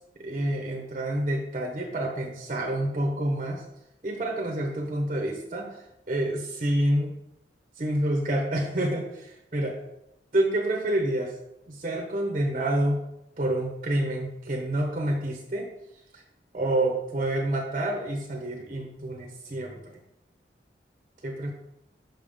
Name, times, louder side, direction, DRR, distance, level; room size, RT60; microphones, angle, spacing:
voice 1, 0.2-3.6 4.0-7.2 7.8-9.8 10.3-11.3 11.7-13.0 13.4-15.7 16.1-16.2 16.5-20.0 21.2-21.5, right 1 dB, 40° right, 1 dB, 0.8 m, -28 dB
5.8 x 5.4 x 3.4 m, 0.84 s
head